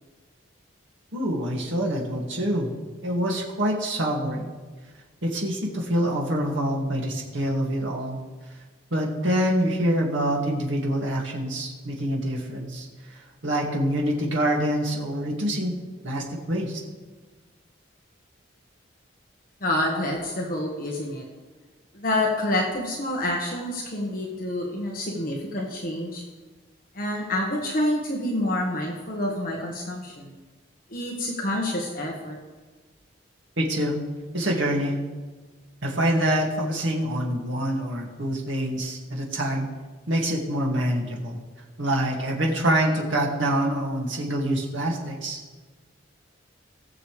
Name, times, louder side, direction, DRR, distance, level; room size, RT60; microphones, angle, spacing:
voice 1, 1.1-2.7 3.0-4.5 5.2-8.2 8.9-12.9 13.4-15.8 16.0-16.8 33.6-34.0 34.3-35.0 35.8-39.7 40.1-41.4 41.8-45.4, right 1 dB, 80° right, -1 dB, 2.2 m, -25 dB
voice 2, 19.6-21.2 21.9-26.2 26.9-30.3 30.9-32.4, left 1 dB, 45° left, -1 dB, 1.5 m, -27 dB
19.5 x 7.0 x 3.3 m, 1.3 s
head